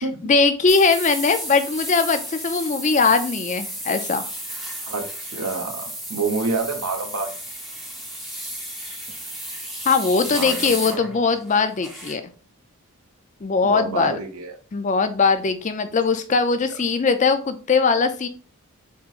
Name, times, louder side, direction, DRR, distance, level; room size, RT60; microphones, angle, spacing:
voice 1, 0.2-4.3 9.9-12.3 13.4-14.2 14.7-18.3, left 4 dB, 35° left, 10 dB, 0.4 m, -20 dB
sound 1, 0.7-12.1, equal, ahead, 0.9 m, -33 dB
voice 2, 4.8-7.3 10.3-11.2 13.6-14.5, right 4 dB, 80° right, 4 dB, 1.0 m, -28 dB
7.0 x 3.0 x 2.4 m, 0.39 s
head